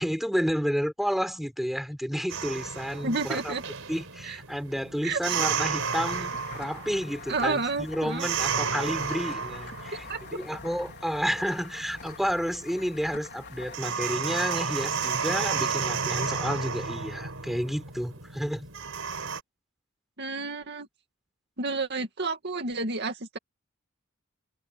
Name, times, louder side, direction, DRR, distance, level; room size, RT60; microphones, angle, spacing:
voice 1, 0.0-3.5 3.9-18.7, equal, ahead, 6.7 m, -31 dB
sound 1, 2.3-19.4, right 5 dB, 75° right, 5.5 m, -33 dB
voice 2, 3.0-3.6 4.2-4.4 5.0-5.2 6.1-6.2 7.3-8.3 10.1-10.2 20.2-20.9 21.6-23.4, right 3 dB, 55° right, 2.3 m, -30 dB
sound 2, 5.3-14.7, left 5 dB, 55° left, 4.0 m, -45 dB
head